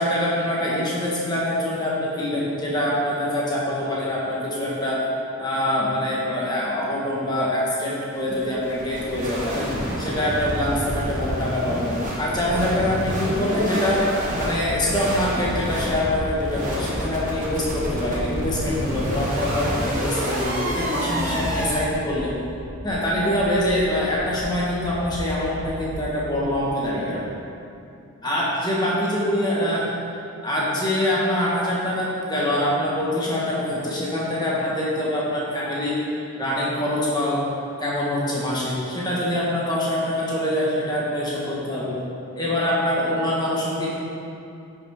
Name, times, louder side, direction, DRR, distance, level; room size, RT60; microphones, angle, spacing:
voice 1, 0.0-5.0 5.4-11.9 12.2-14.0 14.4-22.3 22.8-27.3 28.2-29.8 30.4-35.9 36.3-37.4 37.8-41.9 42.3-44.0, left 1 dB, 20° left, -6 dB, 1.4 m, -24 dB
sound 1, 8.1-21.8, equal, 35° right, 1.2 m, -28 dB
sound 2, 14.3-14.7 15.1-15.4 15.8-16.2 16.6-16.9 17.3-17.7 18.1-18.4 18.8-19.2 19.6-19.9 20.3-20.7 21.1-21.4 21.8-22.2 22.6-22.9 23.3-23.7 24.1-24.4 24.8-25.2 25.6-25.9 26.3-26.4, equal, 40° left, 1.7 m, -38 dB
9.0 x 5.5 x 3.5 m, 2.6 s
head